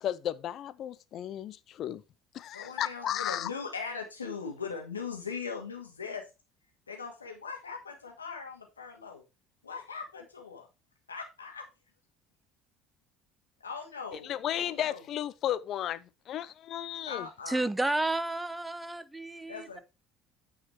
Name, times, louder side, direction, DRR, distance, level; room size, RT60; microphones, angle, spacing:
voice 1, 0.0-2.0 2.3-3.5 14.2-17.3, left 11 dB, 50° left, 0.7 m, -34 dB
voice 2, 2.5-6.3 6.9-9.2 9.6-10.7 11.1-11.6 13.6-15.0 17.1-17.7 19.5-19.8, left 5 dB, 90° left, 2.1 m, -40 dB
voice 3, 17.5-19.8, right 2 dB, 10° right, 0.8 m, -31 dB
9.5 x 4.9 x 4.7 m
figure-of-eight pair, 60°, 0 cm